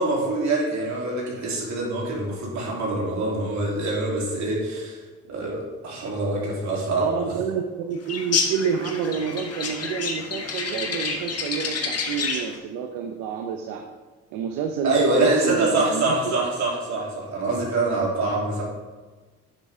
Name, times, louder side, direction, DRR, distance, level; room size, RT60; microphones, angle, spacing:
voice 1, 0.0-5.0 5.3-7.3 14.8-18.6, right 2 dB, 65° right, -4 dB, 3.2 m, -25 dB
voice 2, 6.9-13.8 14.3-16.4, right 7 dB, 80° right, 4 dB, 0.8 m, -29 dB
sound 1, 8.1-12.6, left 4 dB, 50° left, 1.5 m, -28 dB
10.5 x 7.2 x 3.6 m, 1.3 s
supercardioid pair, 65°, 31 cm